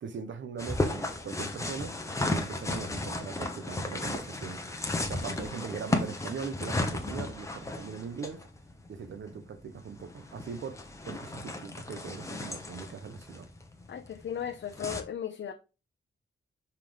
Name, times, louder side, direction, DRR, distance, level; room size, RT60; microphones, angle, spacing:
voice 1, 0.0-1.9 2.3-4.6 5.1-8.4 8.9-10.8 11.0-13.5, right 6 dB, 75° right, 0.9 m, -40 dB
sound 1, 0.6-15.0, left 2 dB, 15° left, 0.9 m, -35 dB
voice 2, 13.9-15.5, left 8 dB, 65° left, 0.6 m, -36 dB
5.7 x 3.8 x 5.0 m
wide cardioid pair, 175°, 20 cm